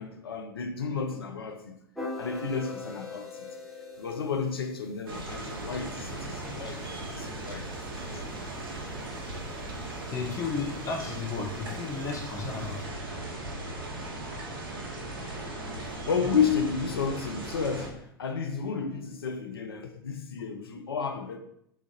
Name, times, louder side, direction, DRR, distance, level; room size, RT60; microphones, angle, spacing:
voice 1, 0.0-1.8 2.2-3.5 4.0-7.7 8.1-8.2 15.9-21.4, left 5 dB, 75° left, 0.5 m, -32 dB
sound 1, 2.0-8.0, left 3 dB, ahead, 0.9 m, -43 dB
sound 2, 5.1-17.9, right 2 dB, 65° right, 1.1 m, -38 dB
voice 2, 10.1-13.2, left 5 dB, 25° left, 0.9 m, -34 dB
3.6 x 3.2 x 3.9 m
figure-of-eight pair, 90°, 13 cm